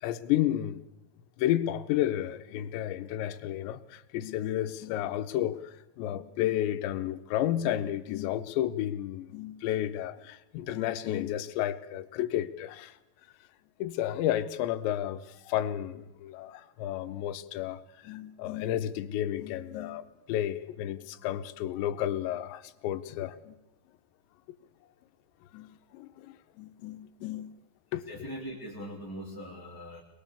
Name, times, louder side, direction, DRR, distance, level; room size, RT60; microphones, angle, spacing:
voice 1, 0.0-0.8 1.4-13.0 13.8-23.6 25.5-27.6 27.9-28.0, left 12 dB, 90° left, 11 dB, 3.2 m, -32 dB
voice 2, 28.1-30.0, equal, 5° left, -2 dB, 1.9 m, -41 dB
23.0 x 21.5 x 7.2 m, 0.95 s
omnidirectional pair, 5.0 m